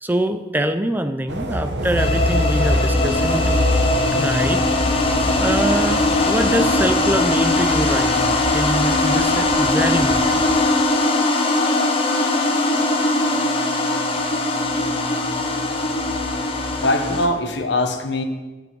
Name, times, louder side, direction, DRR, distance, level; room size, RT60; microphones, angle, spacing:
voice 1, 0.0-3.7 4.1-4.7 5.0-10.3, right 1 dB, 10° right, 9 dB, 0.5 m, -24 dB
sound 1, 1.3-7.2, right 1 dB, 65° right, 0.9 m, -30 dB
sound 2, 1.7-2.0 2.4-2.5 2.9-10.6, right 1 dB, 30° right, 1.2 m, -35 dB
sound 3, 2.0-17.3, left 2 dB, 30° left, 1.1 m, -20 dB
voice 2, 16.8-18.2, left 2 dB, 75° left, 6 dB, 1.1 m, -21 dB
9.9 x 5.2 x 7.7 m, 1.2 s
head